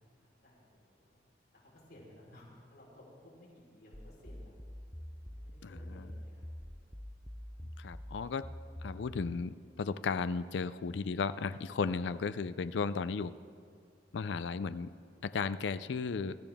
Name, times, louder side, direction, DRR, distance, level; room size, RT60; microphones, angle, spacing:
voice 1, 0.4-1.2 1.5-4.6 5.1-6.5, left 1 dB, 55° left, -5 dB, 4.3 m, -57 dB
sound 1, 3.9-9.4, equal, 5° left, 0.4 m, -46 dB
voice 2, 5.6-6.1 7.8-8.5 8.8-13.3 14.1-14.9 15.2-16.4, left 5 dB, 75° left, 13 dB, 0.4 m, -35 dB
22.5 x 14.0 x 3.5 m, 2.4 s
head